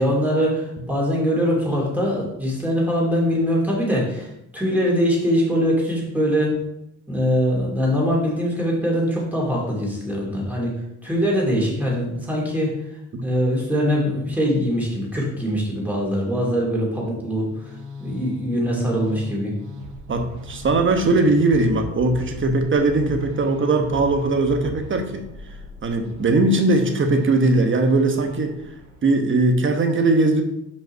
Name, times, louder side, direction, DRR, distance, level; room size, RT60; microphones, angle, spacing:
voice 1, 0.0-6.5 7.1-10.7 11.0-12.7 13.2-19.5, equal, 5° right, -4 dB, 2.9 m, -22 dB
sound 1, 17.2-29.1, right 1 dB, 80° right, 1.1 m, -39 dB
voice 2, 20.1-25.2 25.8-28.6 29.0-30.4, right 2 dB, 40° right, 5 dB, 1.2 m, -19 dB
5.5 x 5.3 x 4.6 m, 0.82 s
cardioid pair, 90°, 30 cm